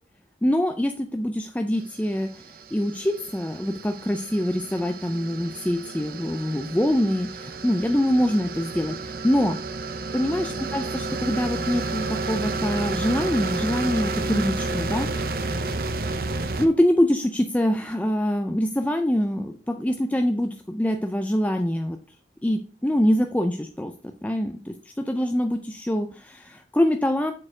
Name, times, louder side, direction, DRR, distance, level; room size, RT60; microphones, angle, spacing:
voice 1, 0.4-9.6 10.1-15.8 16.5-22.0 22.4-23.9 24.2-27.3, equal, 10° left, 6 dB, 0.4 m, -24 dB
sound 1, 2.0-16.7, right 3 dB, 55° right, 0.6 m, -31 dB
7.6 x 4.2 x 4.8 m, 0.40 s
head